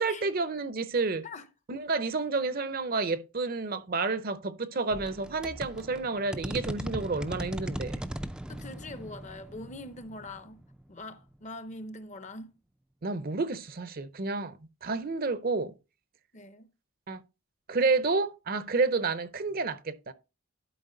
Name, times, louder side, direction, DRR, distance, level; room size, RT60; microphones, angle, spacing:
voice 1, 0.0-1.2 1.7-8.1 13.0-15.7 17.1-17.2 17.7-20.1, right 3 dB, 40° right, 0.6 m, -30 dB
sound 1, 4.9-11.4, equal, 5° right, 0.4 m, -39 dB
voice 2, 8.5-10.6 10.9-12.6 16.3-16.7, left 2 dB, 35° left, 0.7 m, -43 dB
12.0 x 4.8 x 3.8 m
head